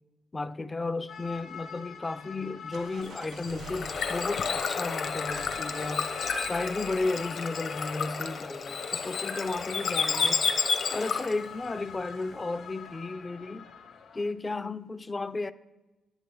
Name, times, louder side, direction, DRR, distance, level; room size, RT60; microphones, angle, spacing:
voice 1, 0.3-6.2 6.5-10.4 10.9-13.7 14.1-15.5, left 3 dB, 25° left, 0.4 m, -34 dB
sound 1, 1.1-14.3, left 6 dB, 85° left, 1.7 m, -45 dB
sound 2, 2.7-12.9, right 3 dB, 85° right, 2.0 m, -49 dB
Bird / Water, 3.0-11.5, left 5 dB, 60° left, 0.9 m, -31 dB
11.0 x 9.6 x 3.8 m
cardioid pair, 100°, 0 cm